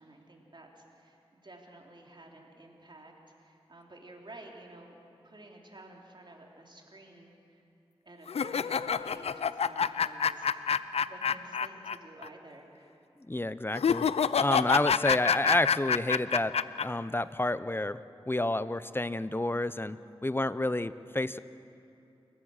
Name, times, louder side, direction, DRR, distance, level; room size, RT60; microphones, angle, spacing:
voice 1, 0.0-5.0 5.2-7.6 8.0-13.0, right 2 dB, 50° right, 0 dB, 3.6 m, -52 dB
sound 1, 8.3-12.0 12.2-12.3 13.7-16.8, left 7 dB, 85° left, 0.5 m, -27 dB
voice 2, 13.3-14.1 14.4-16.5 16.8-18.0 18.3-21.4, left 2 dB, 20° left, 15 dB, 0.7 m, -29 dB
28.5 x 15.0 x 6.5 m, 2.7 s
cardioid pair, 40°, 10 cm